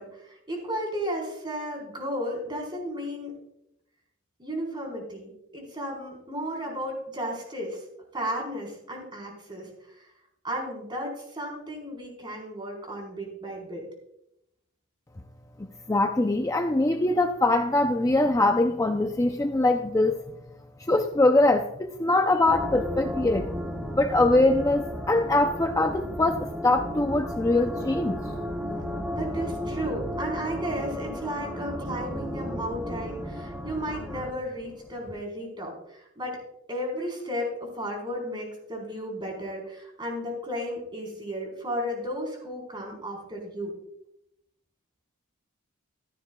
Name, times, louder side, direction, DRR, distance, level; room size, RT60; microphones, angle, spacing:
voice 1, 0.0-3.3 4.4-7.8 8.1-9.7 10.4-13.8 29.2-36.4 36.7-43.7, equal, 25° right, 0 dB, 4.2 m, -34 dB
voice 2, 15.9-20.2 20.9-23.5 23.9-28.2, left 2 dB, 15° left, 5 dB, 0.5 m, -23 dB
sound 1, 22.5-34.3, equal, 5° right, 1.1 m, -34 dB
15.0 x 13.5 x 2.3 m, 0.79 s
head